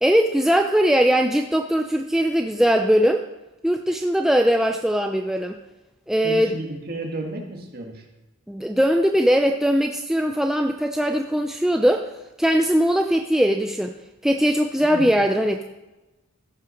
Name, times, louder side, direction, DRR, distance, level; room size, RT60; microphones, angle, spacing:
voice 1, 0.0-3.2 3.6-5.5 6.1-6.6 8.5-12.1 12.4-13.9 14.2-15.6, equal, ahead, 4 dB, 0.3 m, -20 dB
voice 2, 6.2-8.1 14.8-15.2, right 1 dB, 45° right, 1 dB, 1.6 m, -33 dB
14.0 x 5.7 x 5.1 m, 1.0 s
head